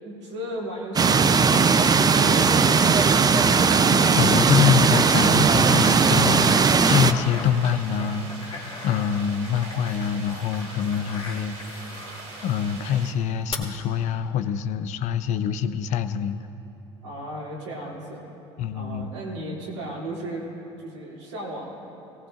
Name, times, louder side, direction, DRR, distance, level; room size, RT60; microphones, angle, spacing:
voice 1, 0.0-3.2 17.0-18.2 18.7-20.4 20.8-21.8, right 1 dB, 85° right, -5 dB, 2.9 m, -35 dB
sound 1, 1.0-7.1, right 5 dB, 25° right, 0.6 m, -18 dB
voice 2, 4.1-12.0 12.4-16.5 18.6-19.1, left 8 dB, 55° left, 11 dB, 0.6 m, -25 dB
sound 2, 5.0-12.7 13.5-13.6, left 3 dB, 40° left, 2.3 m, -40 dB
sound 3, 6.7-13.1, right 3 dB, 65° right, 3.0 m, -42 dB
18.0 x 18.0 x 2.6 m, 3.0 s
hypercardioid pair, 65°, 15 cm